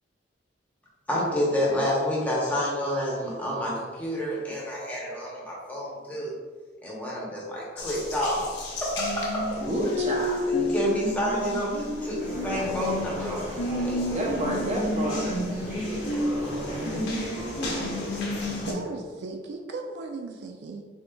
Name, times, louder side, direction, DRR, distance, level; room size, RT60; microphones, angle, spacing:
voice 1, 1.1-6.3 6.8-8.4 8.8-9.6 10.5-14.1 16.4-17.1, equal, 10° left, -5 dB, 0.8 m, -29 dB
Water tap faucet, 7.8-18.7, left 1 dB, 80° left, 0.8 m, -31 dB
voice 2, 9.6-10.4 14.1-15.4, right 1 dB, 40° right, -2 dB, 0.7 m, -29 dB
sound 1, 12.2-18.8, right 1 dB, 10° right, 1.1 m, -36 dB
voice 3, 18.5-20.8, right 3 dB, 65° right, 3 dB, 0.3 m, -36 dB
3.7 x 3.6 x 2.2 m, 1.4 s
head